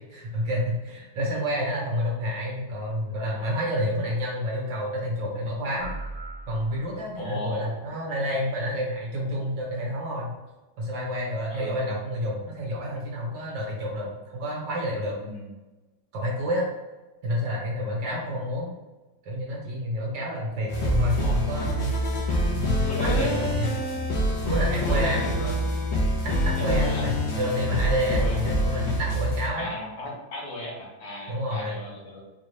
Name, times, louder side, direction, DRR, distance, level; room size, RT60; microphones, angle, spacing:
voice 1, 0.1-5.9 6.5-10.3 10.8-15.2 16.1-16.7 17.2-18.7 19.2-22.0 22.5-23.8 24.5-25.3 26.2-29.7 31.3-31.8, equal, 70° right, -3 dB, 1.8 m, -29 dB
sound 1, 5.8-7.4, right 2 dB, 40° left, 0.8 m, -39 dB
voice 2, 7.2-7.7 11.5-12.0 15.2-15.5 21.2-21.3 22.7-23.4 24.8-25.5 26.6-27.1 28.1-28.4 29.6-32.2, left 1 dB, 65° left, -2 dB, 1.5 m, -36 dB
sound 2, 20.7-29.5, equal, 90° left, 1.6 m, -26 dB
5.1 x 2.4 x 3.3 m, 1.1 s
omnidirectional pair, 2.1 m